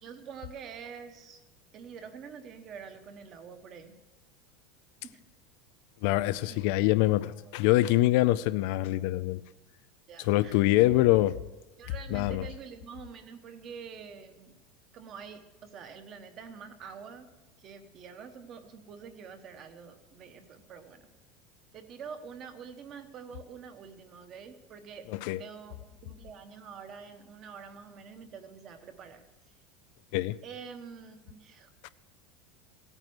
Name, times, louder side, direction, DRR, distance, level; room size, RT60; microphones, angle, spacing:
voice 1, 0.0-1.4 1.7-4.0 5.0-5.2 6.5-6.6 7.4-7.5 10.1-10.6 11.8-14.6 14.9-17.3 17.6-21.1 21.7-25.0 25.4-29.2 30.4-31.9, right 6 dB, 30° right, 8 dB, 1.1 m, -46 dB
voice 2, 6.0-9.4 10.3-11.4 12.1-12.5 25.2-25.4 30.1-30.4 31.8-31.9, left 16 dB, 55° left, 16 dB, 0.4 m, -24 dB
16.5 x 9.0 x 6.2 m, 1.1 s
supercardioid pair, 180°, 0 cm